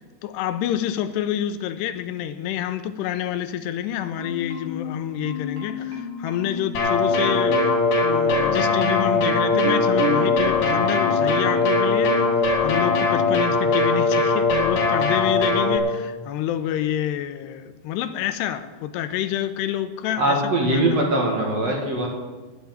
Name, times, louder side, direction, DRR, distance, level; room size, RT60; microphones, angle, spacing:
voice 1, 0.2-7.7 8.0-12.3 12.6-21.1, left 11 dB, 85° left, 10 dB, 2.7 m, -28 dB
Marimba xylophone, 4.2-5.0 5.2-6.7 7.0-7.7 8.1-12.3 12.6-13.4 13.7-14.0, left 3 dB, 80° right, 4.3 m, -32 dB
sound 1, 6.7-15.8, left 3 dB, 55° left, 4.2 m, -20 dB
voice 2, 20.2-22.1, right 1 dB, 45° right, 0 dB, 2.6 m, -21 dB
10.5 x 9.8 x 8.9 m, 1.3 s
omnidirectional pair, 4.9 m